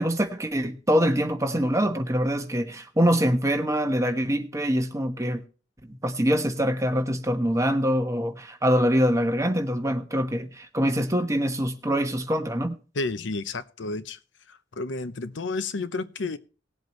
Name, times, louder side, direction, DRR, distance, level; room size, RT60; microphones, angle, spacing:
voice 1, 0.0-5.4 5.8-12.8, equal, 15° right, 1.2 m, -24 dB
voice 2, 12.9-14.2 14.5-16.4, left 3 dB, 85° left, 0.8 m, -31 dB
19.5 x 7.9 x 3.1 m
head